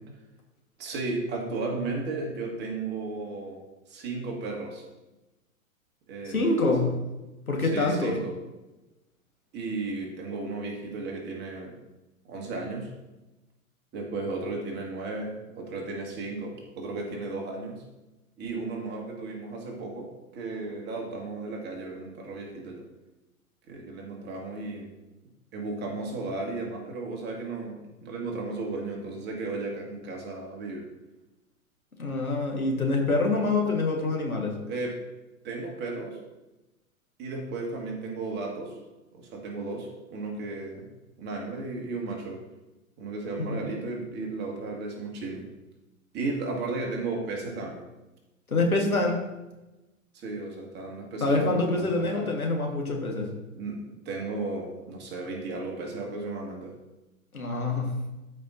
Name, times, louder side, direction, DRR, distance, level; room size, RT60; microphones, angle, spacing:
voice 1, 0.8-3.6 3.9-4.8 6.1-6.9 7.6-8.4 9.5-11.8 12.3-12.9 13.9-17.8 18.4-22.9 23.7-24.9 25.5-30.9 34.7-35.0 35.4-36.2 37.2-38.8 39.1-40.9 41.2-42.4 43.0-45.5 46.1-47.8 50.1-52.3 53.6-56.8, right 3 dB, 25° right, 0 dB, 1.9 m, -34 dB
voice 2, 6.3-7.0 7.5-8.2 32.0-34.6 43.4-43.6 48.5-49.2 51.2-53.3 57.3-58.0, left 2 dB, 85° left, 1 dB, 1.8 m, -26 dB
13.0 x 5.1 x 2.7 m, 1.0 s
figure-of-eight pair, 100°, 42 cm